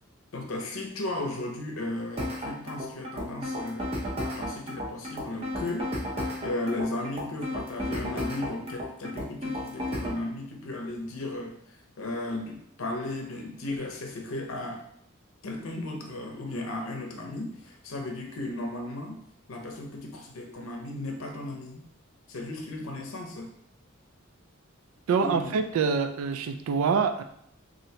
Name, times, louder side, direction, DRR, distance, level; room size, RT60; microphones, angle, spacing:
voice 1, 0.3-3.9 4.2-5.9 6.4-14.8 15.4-19.2 19.5-21.9 22.3-23.5 25.2-25.5, left 2 dB, 80° left, 2 dB, 0.6 m, -35 dB
sound 1, 2.2-10.2, left 1 dB, 30° right, 0.6 m, -33 dB
voice 2, 25.1-27.2, right 5 dB, 80° right, 8 dB, 0.3 m, -25 dB
3.2 x 2.6 x 2.8 m, 0.70 s
head